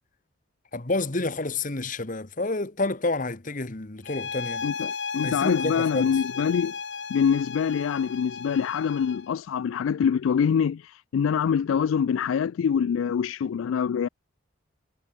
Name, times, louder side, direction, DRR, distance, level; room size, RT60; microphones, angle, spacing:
voice 1, 0.7-4.7 5.2-6.2, left 2 dB, 40° left, 1.3 m, -29 dB
sound 1, 4.0-9.3, left 5 dB, 60° left, 2.0 m, -35 dB
voice 2, 4.6-6.8 7.1-14.1, left 7 dB, 80° left, 0.3 m, -25 dB
head